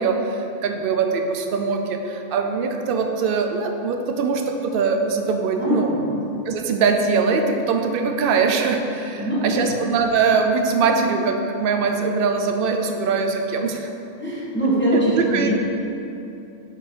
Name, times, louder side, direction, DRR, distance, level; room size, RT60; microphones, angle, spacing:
voice 1, 0.0-5.9 6.5-13.9 14.9-15.5, right 5 dB, 60° right, 4 dB, 0.6 m, -22 dB
voice 2, 5.6-6.2 9.2-9.7 14.2-15.5, equal, 10° left, -9 dB, 1.2 m, -22 dB
5.3 x 4.9 x 4.4 m, 2.9 s
omnidirectional pair, 1.3 m